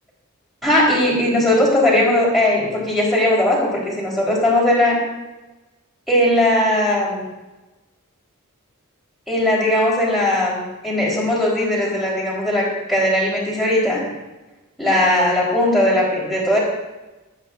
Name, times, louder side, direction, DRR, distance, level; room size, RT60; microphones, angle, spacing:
voice 1, 0.6-5.0 6.1-7.2 9.3-14.0 14.8-16.6, left 1 dB, ahead, -7 dB, 4.4 m, -18 dB
26.5 x 9.6 x 2.7 m, 1.1 s
head